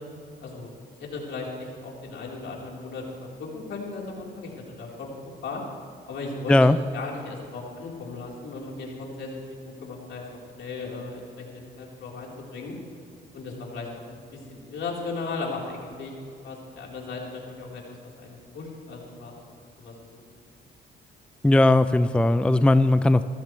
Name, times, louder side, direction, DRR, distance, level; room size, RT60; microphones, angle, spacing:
voice 1, 1.0-4.5 4.8-5.1 5.4-5.6 6.1-10.3 10.6-12.7 13.3-16.1 16.4-17.8 18.2-19.3 19.8-20.2, left 3 dB, 70° left, -3 dB, 4.1 m, -36 dB
voice 2, 21.4-23.3, left 2 dB, 5° left, 12 dB, 0.4 m, -18 dB
25.0 x 14.5 x 3.3 m, 2.5 s
cardioid pair, 90°, 20 cm